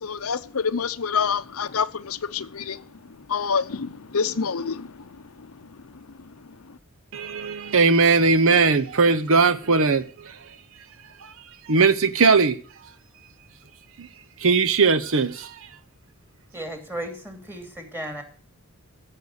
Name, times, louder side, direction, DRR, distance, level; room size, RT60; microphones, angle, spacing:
voice 1, 0.0-2.8 3.3-4.9, left 6 dB, 70° left, 0.7 m, -26 dB
voice 2, 7.1-10.4 11.2-11.3 11.7-12.6 14.0-14.1 14.4-15.6, right 4 dB, 65° right, 0.8 m, -19 dB
voice 3, 16.5-18.2, right 1 dB, 10° right, 2.7 m, -35 dB
14.5 x 6.7 x 6.5 m
head